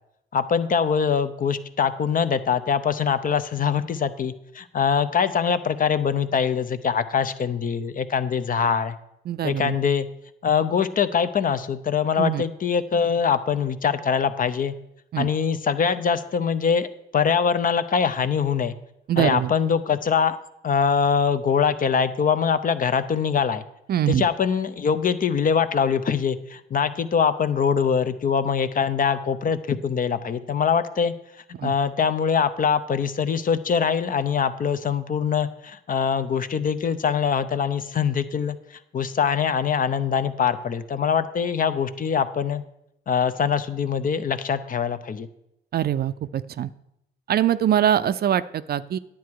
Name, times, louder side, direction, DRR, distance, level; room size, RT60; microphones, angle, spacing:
voice 1, 0.3-9.0 9.4-10.1 10.4-14.7 15.2-16.9 17.1-18.7 19.2-20.4 20.6-23.6 24.1-31.1 31.6-38.6 38.9-42.6 43.1-45.3, left 6 dB, 45° left, 12 dB, 0.7 m, -23 dB
voice 2, 9.3-9.8 12.2-12.4 15.1-15.3 19.1-19.5 23.9-24.3 31.6-31.7 45.7-46.7 47.3-49.0, right 10 dB, 50° right, 14 dB, 0.5 m, -23 dB
10.5 x 8.5 x 4.7 m, 0.81 s
cardioid pair, 90°, 20 cm